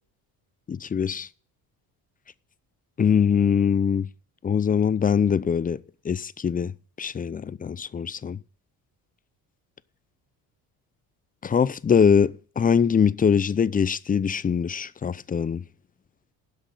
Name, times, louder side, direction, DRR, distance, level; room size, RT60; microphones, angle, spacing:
voice 1, 0.7-1.3 3.0-4.1 4.4-6.7 7.0-8.4 11.4-15.6, left 7 dB, 25° left, 0.5 m, -22 dB
11.5 x 6.2 x 8.4 m
cardioid pair, 90°, 38 cm